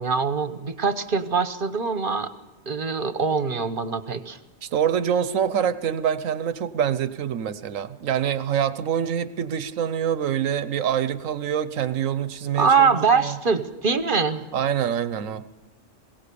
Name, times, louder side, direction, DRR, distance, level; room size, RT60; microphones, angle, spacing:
voice 1, 0.0-2.3 2.7-4.4 12.6-14.4, right 5 dB, 45° right, 11 dB, 1.1 m, -23 dB
voice 2, 4.6-13.4 14.5-15.5, right 9 dB, 90° right, 14 dB, 1.3 m, -25 dB
22.0 x 17.5 x 6.9 m, 1.0 s
omnidirectional pair, 1.3 m